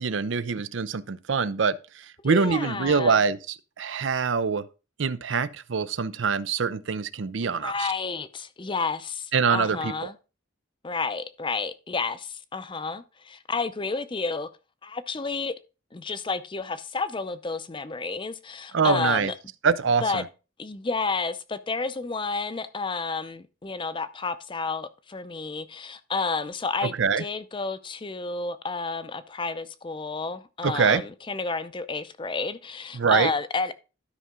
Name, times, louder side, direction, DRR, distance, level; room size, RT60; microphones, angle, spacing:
voice 1, 0.0-4.6 5.0-7.9 9.3-10.1 18.7-19.3 19.6-20.2 27.0-27.2 30.6-31.0 32.9-33.3, right 5 dB, 70° right, 0.5 m, -24 dB
voice 2, 2.2-3.2 7.6-10.1 10.8-14.5 14.8-15.5 15.9-19.3 20.0-20.2 20.6-33.7, left 4 dB, 25° left, 0.5 m, -31 dB
12.0 x 5.5 x 3.7 m
head